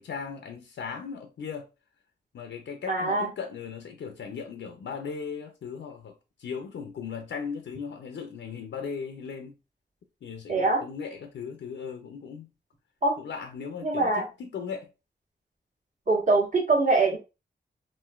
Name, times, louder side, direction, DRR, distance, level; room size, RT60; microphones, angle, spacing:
voice 1, 0.0-1.7 2.3-6.1 6.4-9.5 10.2-12.5 13.2-14.9, left 6 dB, 90° left, 0.4 m, -37 dB
voice 2, 2.9-3.3 10.5-10.8 13.0-13.1 13.8-14.3 16.1-17.2, right 3 dB, 45° right, 1.2 m, -23 dB
3.0 x 2.7 x 2.3 m
cardioid pair, 60°, 18 cm